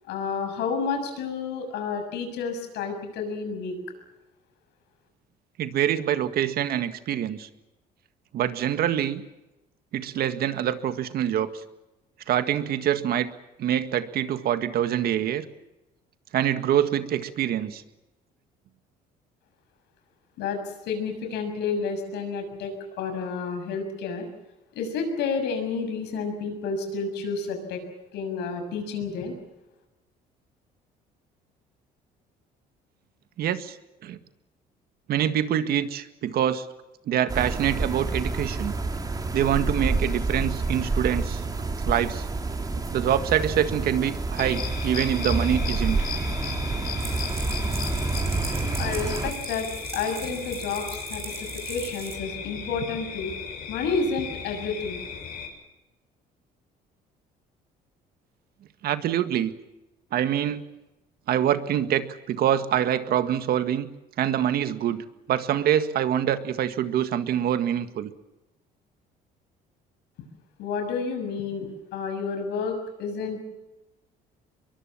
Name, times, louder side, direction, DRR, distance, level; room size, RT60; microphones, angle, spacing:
voice 1, 0.1-3.8 20.4-24.3 24.7-27.8 28.1-29.3 48.8-49.7 49.9-53.3 53.7-55.0 70.6-73.4, left 5 dB, 85° left, 6 dB, 6.7 m, -30 dB
voice 2, 5.6-7.5 8.3-9.2 9.9-11.5 12.3-13.3 13.6-15.4 16.3-17.8 33.4-33.8 34.0-34.2 35.1-36.7 37.1-38.8 39.3-41.4 41.9-42.3 42.9-46.0 58.8-59.5 60.1-60.6 61.3-63.9 64.2-68.1, right 10 dB, 65° right, 10 dB, 1.8 m, -25 dB
sound 1, 37.3-49.3, right 3 dB, 20° right, 2.8 m, -28 dB
sound 2, 44.4-55.5, left 7 dB, 60° left, 7.1 m, -36 dB
sound 3, 47.0-52.2, right 5 dB, 35° right, 6.1 m, -39 dB
23.5 x 22.5 x 7.3 m, 0.98 s
cardioid pair, 110°, 17 cm